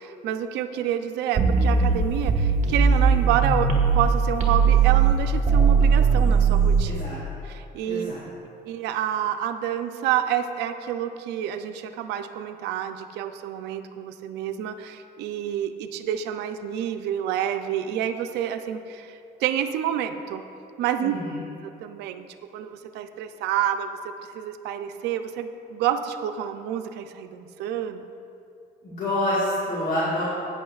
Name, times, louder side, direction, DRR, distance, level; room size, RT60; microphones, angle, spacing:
voice 1, 0.0-7.0 7.4-8.2 8.6-20.4 20.8-21.2 21.6-22.3 22.5-24.0 24.3-28.1, right 10 dB, 85° right, 8 dB, 0.5 m, -28 dB
sound 1, 1.4-4.1 4.4-6.8, right 5 dB, 45° right, 1.2 m, -19 dB
voice 2, 6.8-7.2 7.9-8.2 21.0-21.5 28.8-30.2, left 1 dB, 60° left, -6 dB, 2.1 m, -27 dB
12.0 x 9.2 x 2.4 m, 2.6 s
cardioid pair, 110°, 17 cm